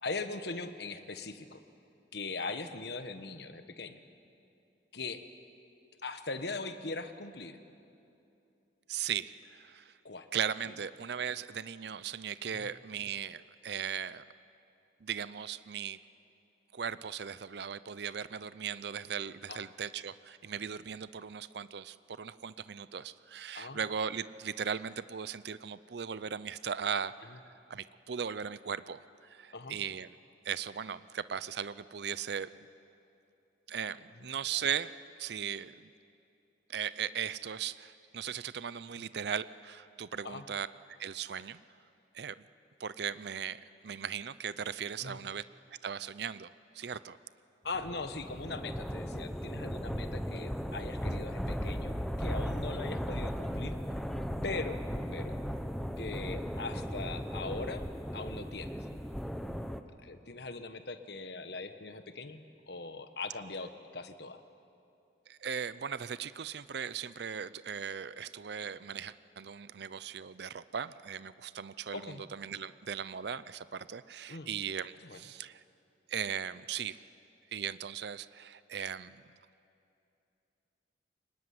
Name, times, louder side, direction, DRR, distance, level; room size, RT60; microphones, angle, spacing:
voice 1, 0.0-1.6 2.1-4.0 4.9-5.2 6.0-7.6 10.0-10.3 12.5-12.7 19.5-19.6 23.5-23.8 29.5-29.8 40.2-40.4 45.0-45.2 47.6-53.8 54.4-54.8 55.1-55.3 56.0-57.8 58.1-58.8 60.0-64.4 71.9-72.2 74.3-74.5 75.0-75.2, left 3 dB, 60° left, 9 dB, 1.3 m, -40 dB
voice 2, 8.9-9.9 10.3-14.2 15.0-16.0 16.7-27.4 27.7-30.1 30.4-32.7 33.7-34.9 35.2-35.9 36.7-40.7 41.0-41.6 42.1-42.4 42.8-45.4 45.8-47.2 65.3-75.6 76.1-77.0 77.5-79.2, right 7 dB, 60° right, 16 dB, 0.5 m, -38 dB
sound 1, 47.7-59.8, equal, ahead, 0.8 m, -37 dB
23.5 x 20.0 x 9.6 m, 2.7 s
head